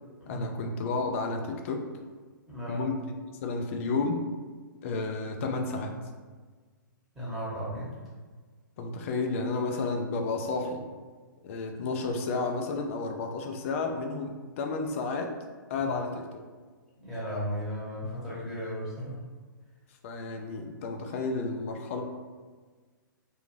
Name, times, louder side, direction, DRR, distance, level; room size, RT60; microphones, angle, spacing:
voice 1, 0.3-1.9 2.7-3.0 3.4-4.2 4.8-6.0 8.8-10.9 11.4-15.3 15.7-16.3 20.0-22.0, left 3 dB, 40° left, 4 dB, 0.4 m, -31 dB
voice 2, 2.5-2.9 7.1-7.9 15.8-16.0 17.0-19.2, equal, ahead, -10 dB, 1.1 m, -35 dB
2.6 x 2.2 x 3.1 m, 1.4 s
figure-of-eight pair, 120°, 11 cm